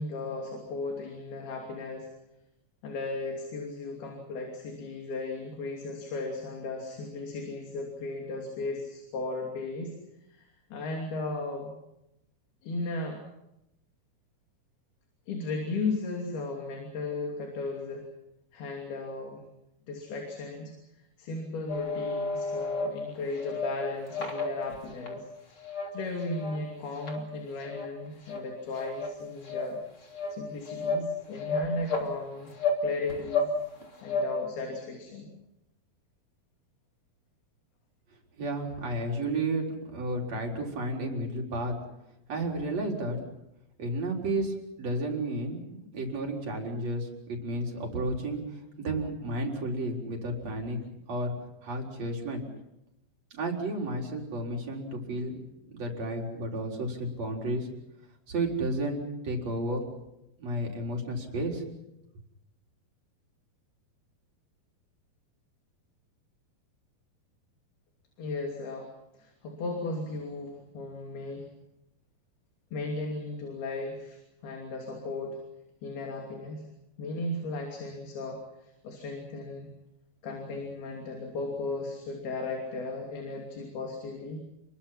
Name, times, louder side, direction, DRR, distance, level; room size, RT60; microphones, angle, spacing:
voice 1, 0.0-2.1 2.8-9.9 10.3-10.4 10.7-11.7 12.6-13.2 15.3-18.0 18.5-19.4 19.9-20.7 21.2-25.3 25.9-29.8 30.3-32.5 32.8-33.5 34.0-35.3 68.2-68.9 69.1-71.5 72.7-75.4 75.8-76.6 77.0-79.7 80.2-84.4, left 3 dB, 75° left, 1 dB, 4.9 m, -36 dB
sound 1, 21.7-22.9 23.4-23.7 24.1-25.2 25.6-25.9 26.2-26.6 27.0-27.2 27.6-27.9 28.3-28.4 28.8-29.1 29.5-29.6 30.1-30.3 30.7-31.0 31.4-32.1 32.6-32.8 33.1-33.5 33.8-34.2, left 3 dB, 35° left, 3.8 m, -31 dB
voice 2, 38.4-39.7 39.9-41.8 42.3-43.2 43.8-48.4 48.8-50.8 51.1-51.3 51.6-52.4 53.4-55.4 55.7-57.7 58.3-59.8 60.4-61.6, right 1 dB, 45° right, 0 dB, 5.1 m, -32 dB
29.5 x 22.5 x 5.8 m, 0.87 s
omnidirectional pair, 4.4 m